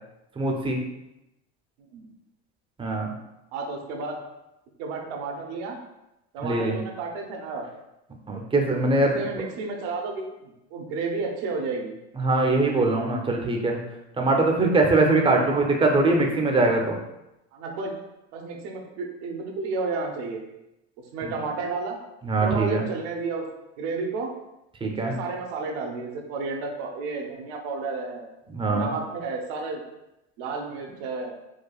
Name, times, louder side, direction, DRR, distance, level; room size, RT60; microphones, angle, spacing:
voice 1, 0.4-0.8 2.8-3.1 6.4-6.8 8.3-9.4 12.2-13.8 14.2-17.0 21.2-21.3 22.2-22.8 24.8-25.1 28.5-28.9, right 2 dB, 15° right, 1 dB, 0.6 m, -22 dB
voice 2, 3.5-4.2 4.8-5.8 6.3-7.7 9.1-12.0 15.4-15.7 17.5-17.9 18.3-20.4 21.1-22.0 22.4-23.5 23.8-24.3 25.0-28.3 28.6-29.8 30.4-31.3, right 4 dB, 70° right, 2 dB, 0.8 m, -32 dB
4.7 x 2.3 x 2.3 m, 0.90 s
supercardioid pair, 105°, 33 cm